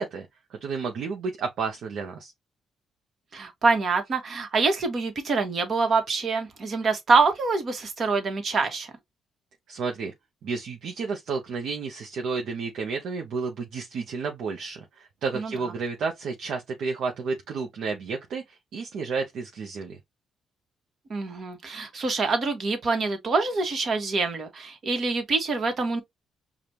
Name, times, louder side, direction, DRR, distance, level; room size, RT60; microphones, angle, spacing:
voice 1, 0.0-2.3 9.7-10.1 10.4-20.0, right 4 dB, 70° right, 0.8 m, -31 dB
voice 2, 3.3-8.9 15.3-15.5 21.1-26.0, right 4 dB, 50° right, 1.3 m, -25 dB
5.0 x 2.4 x 2.9 m
cardioid pair, 90°, 0 cm